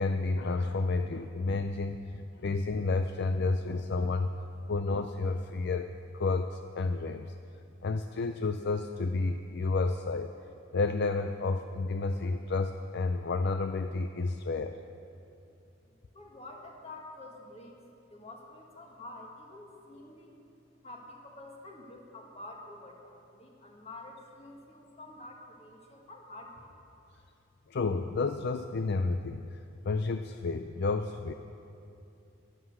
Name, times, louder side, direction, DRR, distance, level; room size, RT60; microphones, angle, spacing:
voice 1, 0.0-4.3 4.6-7.3 7.8-10.3 10.7-14.8 27.7-29.4 29.8-31.3, left 3 dB, 55° left, 8 dB, 0.4 m, -31 dB
voice 2, 16.1-17.8 18.1-20.4 20.8-26.7, left 2 dB, 30° left, 0 dB, 1.8 m, -48 dB
11.5 x 11.5 x 7.7 m, 2.7 s
head